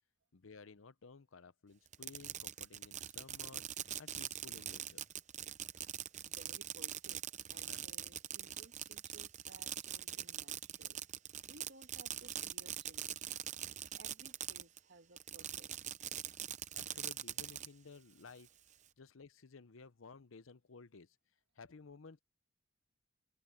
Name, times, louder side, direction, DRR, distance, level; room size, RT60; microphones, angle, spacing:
voice 1, 0.3-5.0 7.7-7.8 16.7-18.5 19.0-21.1 21.6-22.2, left 4 dB, 75° left, 0.8 m, -56 dB
Fireworks, 1.9-14.8 15.2-17.7, right 10 dB, 35° right, 0.7 m, -43 dB
voice 2, 6.3-7.2 7.5-11.0 11.5-13.3 14.0-15.9, right 2 dB, 60° right, 1.6 m, -60 dB
head